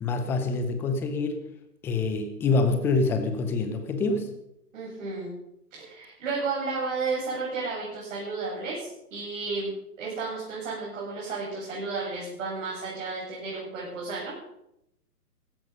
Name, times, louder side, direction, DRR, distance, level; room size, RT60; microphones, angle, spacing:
voice 1, 0.0-1.4 1.8-4.3, left 3 dB, 5° left, 7 dB, 0.6 m, -26 dB
voice 2, 4.7-5.3 5.7-14.4, right 4 dB, 50° right, -6 dB, 8.0 m, -33 dB
16.0 x 13.5 x 5.4 m, 0.80 s
figure-of-eight pair, 135°, 48 cm